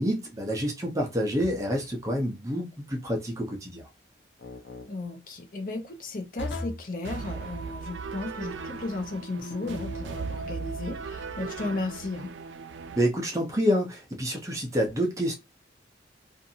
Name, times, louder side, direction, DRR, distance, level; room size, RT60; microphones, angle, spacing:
voice 1, 0.0-3.9 12.9-15.4, equal, 15° right, 0.6 m, -28 dB
sound 1, 1.4-1.9 4.4-4.9 6.4-6.9 9.4-10.1, left 2 dB, 85° left, 0.7 m, -38 dB
voice 2, 4.8-12.3, left 2 dB, 45° left, 0.6 m, -35 dB
sound 2, 7.0-13.0, right 4 dB, 85° right, 0.3 m, -37 dB
2.5 x 2.5 x 2.6 m
head